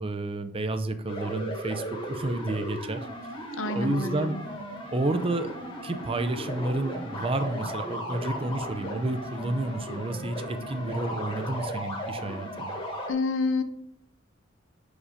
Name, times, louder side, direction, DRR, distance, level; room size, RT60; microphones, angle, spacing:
voice 1, 0.0-3.0 3.7-4.4 4.9-12.8, right 2 dB, 30° right, 10 dB, 0.5 m, -30 dB
sound 1, 1.1-13.1, equal, 25° left, 1.3 m, -36 dB
voice 2, 3.5-4.4 13.1-13.6, left 3 dB, 80° left, 8 dB, 0.8 m, -28 dB
sound 2, 4.5-11.9, left 1 dB, 5° left, 0.7 m, -49 dB
5.4 x 5.0 x 5.0 m, 0.75 s
head